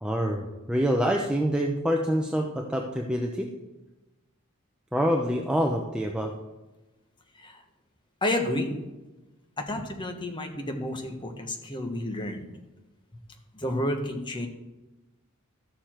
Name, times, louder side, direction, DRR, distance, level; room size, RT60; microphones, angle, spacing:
voice 1, 0.0-3.5 4.9-6.3, equal, 5° right, 0 dB, 0.7 m, -26 dB
voice 2, 8.2-8.7 9.6-12.4 13.5-14.5, left 1 dB, 20° left, 4 dB, 1.3 m, -30 dB
13.0 x 7.0 x 4.5 m, 1.1 s
head